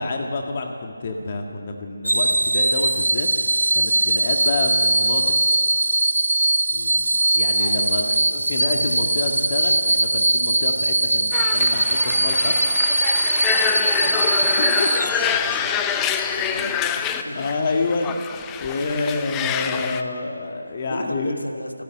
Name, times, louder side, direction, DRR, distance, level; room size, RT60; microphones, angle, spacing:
voice 1, 0.0-3.3 3.7-5.2 7.4-12.5 14.6-15.1 16.6-16.7 17.4-18.2 18.6-21.4, left 3 dB, 35° left, 3 dB, 1.7 m, -28 dB
sound 1, 2.0-15.7 16.2-16.4, right 2 dB, 75° right, 0.4 m, -21 dB
voice 2, 6.7-7.0 7.6-8.1 13.7-17.5 18.1-18.4 20.8-21.8, left 1 dB, 80° left, 4 dB, 2.6 m, -35 dB
sound 2, 11.3-20.0, left 8 dB, 10° left, 0.7 m, -26 dB
29.5 x 10.0 x 9.1 m, 2.7 s
figure-of-eight pair, 155°, 0 cm